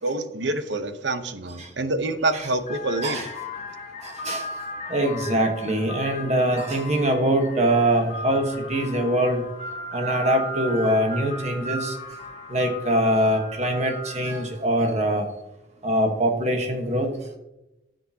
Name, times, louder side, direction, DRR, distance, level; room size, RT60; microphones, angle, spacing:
voice 1, 0.0-3.3, right 2 dB, 70° right, 10 dB, 0.9 m, -27 dB
sound 1, 2.0-2.2 2.6-14.7, left 1 dB, 35° left, 2.1 m, -36 dB
voice 2, 4.0-4.4 4.9-9.4 9.9-11.9 12.5-15.3 15.8-17.1, right 1 dB, 35° right, 3 dB, 1.2 m, -23 dB
15.0 x 6.6 x 2.8 m, 0.91 s
head